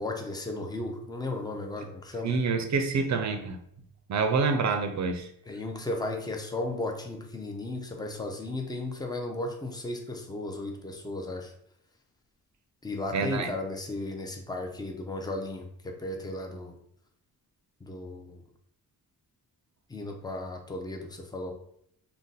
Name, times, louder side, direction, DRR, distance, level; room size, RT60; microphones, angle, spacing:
voice 1, 0.0-2.3 5.5-11.5 12.8-16.8 17.8-18.4 19.9-21.5, left 2 dB, 10° left, 2 dB, 0.5 m, -35 dB
voice 2, 2.2-3.6 4.1-5.3 13.1-13.5, right 4 dB, 45° right, 6 dB, 0.5 m, -27 dB
2.6 x 2.2 x 3.8 m, 0.70 s
cardioid pair, 95°, 39 cm